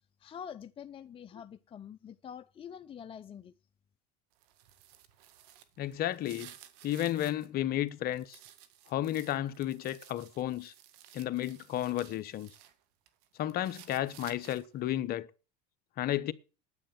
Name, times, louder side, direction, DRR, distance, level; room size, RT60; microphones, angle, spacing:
voice 1, 0.2-3.5, left 8 dB, 25° left, 0.6 m, -46 dB
sound 1, 4.3-7.5 7.9-12.7 13.1-14.8, right 11 dB, 70° right, 1.8 m, -55 dB
voice 2, 5.8-6.5 6.8-8.4 8.9-10.7 11.1-12.5 13.4-15.3 16.0-16.3, left 13 dB, 45° left, 1.0 m, -32 dB
9.8 x 8.8 x 9.0 m
hypercardioid pair, 95°, 21 cm